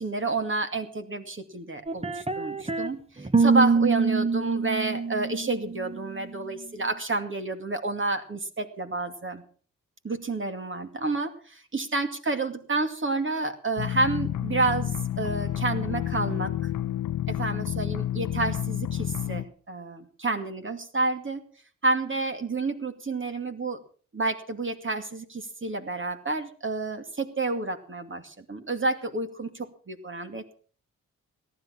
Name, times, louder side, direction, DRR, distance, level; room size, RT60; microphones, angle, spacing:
voice 1, 0.0-9.4 10.0-16.5 17.3-21.4 21.8-23.8 24.1-30.6, right 3 dB, 40° right, 7 dB, 2.4 m, -30 dB
sound 1, 1.9-2.9 3.2-6.2, right 4 dB, 20° right, 1.4 m, -25 dB
sound 2, 13.8-19.4, left 12 dB, 75° left, 0.8 m, -30 dB
18.0 x 11.0 x 5.9 m, 0.43 s
cardioid pair, 55°, 32 cm